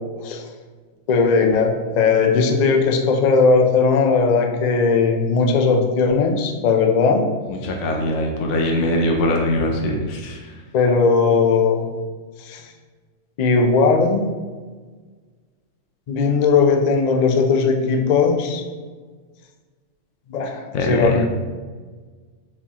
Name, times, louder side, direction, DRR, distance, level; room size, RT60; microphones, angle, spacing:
voice 1, 1.1-7.2 10.7-11.9 12.5-12.6 13.4-14.2 16.1-18.6 20.3-21.3, left 4 dB, 85° left, 3 dB, 0.3 m, -18 dB
voice 2, 7.5-10.5 20.7-21.2, left 1 dB, 70° left, 0 dB, 0.9 m, -22 dB
4.5 x 3.5 x 2.9 m, 1.4 s
omnidirectional pair, 1.3 m